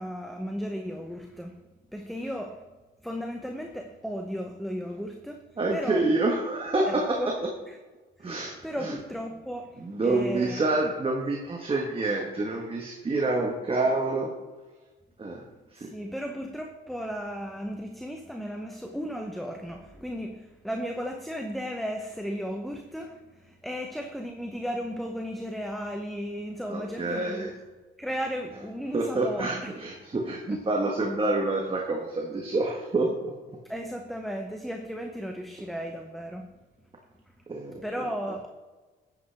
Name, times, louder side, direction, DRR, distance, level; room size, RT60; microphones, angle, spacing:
voice 1, 0.0-1.6 1.9-2.7 3.0-5.4 5.7-6.1 6.9-7.3 7.7-7.8 8.2-10.8 15.8-27.5 28.0-29.9 30.5-30.6 33.6-36.5 37.3-37.4 37.8-38.5, equal, ahead, 3 dB, 0.8 m, -35 dB
voice 2, 5.6-7.2 8.2-8.9 9.8-14.3 15.2-15.4 15.7-15.9 26.7-27.5 28.9-33.3 37.5-38.1, right 2 dB, 30° right, 0 dB, 1.4 m, -27 dB
11.0 x 8.5 x 3.4 m, 1.3 s
cardioid pair, 90°, 20 cm